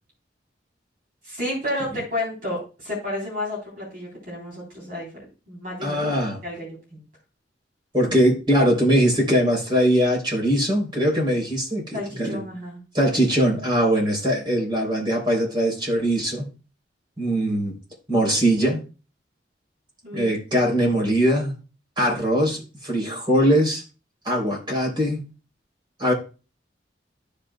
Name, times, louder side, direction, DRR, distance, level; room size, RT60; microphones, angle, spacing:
voice 1, 1.2-5.1 5.5-6.0 6.4-7.0 11.9-12.8 20.0-20.3, left 1 dB, 50° right, 3.4 m, -31 dB
voice 2, 5.8-6.4 7.9-12.4 12.9-16.5 17.2-17.7 18.1-18.8 20.1-21.5 22.0-23.8 24.2-25.2 26.0-26.1, equal, 25° right, 3.3 m, -21 dB
14.0 x 5.2 x 2.2 m
head